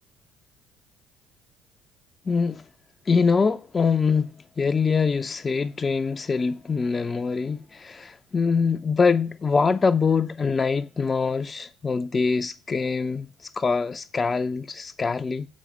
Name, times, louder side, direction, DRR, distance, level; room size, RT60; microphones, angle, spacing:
voice 1, 2.3-2.6 3.1-15.5, left 5 dB, 30° left, 0.5 m, -24 dB
7.4 x 6.2 x 6.7 m
figure-of-eight pair, 50°, 0 cm